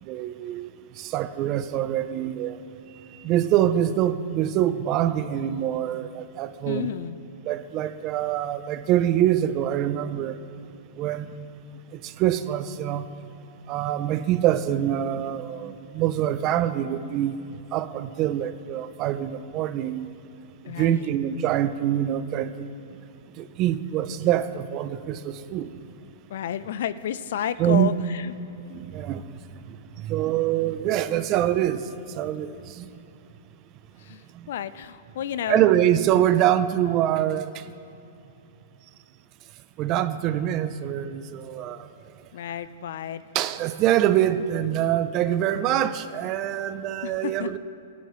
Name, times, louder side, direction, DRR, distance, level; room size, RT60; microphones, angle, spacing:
voice 1, 0.0-2.6 3.1-6.9 7.4-10.4 10.9-11.7 11.9-13.1 13.7-17.4 17.7-20.1 20.6-22.7 23.3-25.7 27.6-27.9 28.7-29.3 29.6-33.0 34.3-34.5 35.5-37.7 39.8-41.9 43.3-47.6, right 11 dB, 25° right, 12 dB, 0.4 m, -25 dB
voice 2, 6.7-7.2 20.6-21.1 26.3-28.3 34.0-35.7 42.3-43.2 47.0-47.6, left 9 dB, 55° left, 14 dB, 0.4 m, -31 dB
17.5 x 11.0 x 3.1 m, 2.8 s
supercardioid pair, 170°, 0 cm